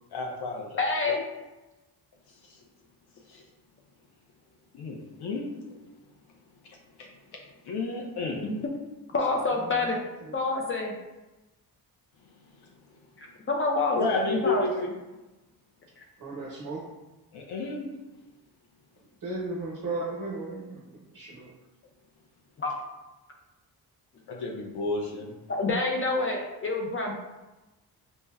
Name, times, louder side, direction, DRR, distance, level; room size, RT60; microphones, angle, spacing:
voice 1, 0.1-0.9 2.4-2.6 3.3-3.4 4.7-5.5 6.6-8.4 13.9-15.0 17.3-17.9 24.3-25.3, left 3 dB, 80° left, 0 dB, 0.6 m, -32 dB
voice 2, 0.8-1.2 8.4-8.5 9.1-10.0 10.3-10.9 13.2-14.7 22.6-22.7 25.5-27.1, left 3 dB, 35° left, -1 dB, 0.4 m, -27 dB
voice 3, 9.5-10.3 16.2-16.9 19.2-21.5, right 2 dB, 60° right, -5 dB, 0.8 m, -36 dB
5.3 x 2.1 x 2.3 m, 1.1 s
wide cardioid pair, 140°, 38 cm